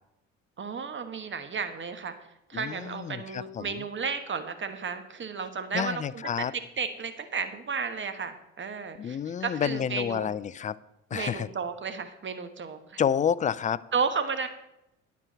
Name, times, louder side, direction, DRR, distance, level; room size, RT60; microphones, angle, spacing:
voice 1, 0.6-2.1 2.5-10.3 11.1-13.0 13.9-14.5, right 5 dB, 30° right, 9 dB, 1.2 m, -33 dB
voice 2, 2.5-3.8 5.7-6.5 9.0-10.8 11.1-11.5 13.0-13.8, left 8 dB, 20° left, 18 dB, 0.3 m, -29 dB
9.7 x 4.6 x 7.0 m, 0.87 s
hypercardioid pair, 60°, 37 cm